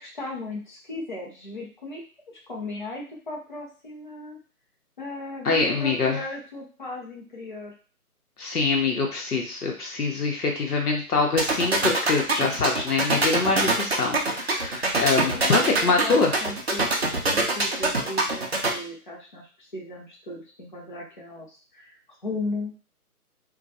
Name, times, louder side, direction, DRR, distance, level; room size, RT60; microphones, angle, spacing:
voice 1, 0.0-2.0 2.5-4.4 5.0-7.7 15.2-22.0 22.2-22.7, left 2 dB, 35° left, -3 dB, 0.5 m, -36 dB
voice 2, 5.4-6.2 8.4-16.3, left 4 dB, 75° left, 1 dB, 0.8 m, -24 dB
sound 1, 11.4-18.7, right 3 dB, 45° right, 0.4 m, -23 dB
2.2 x 2.1 x 2.7 m, 0.37 s
figure-of-eight pair, 145°, 46 cm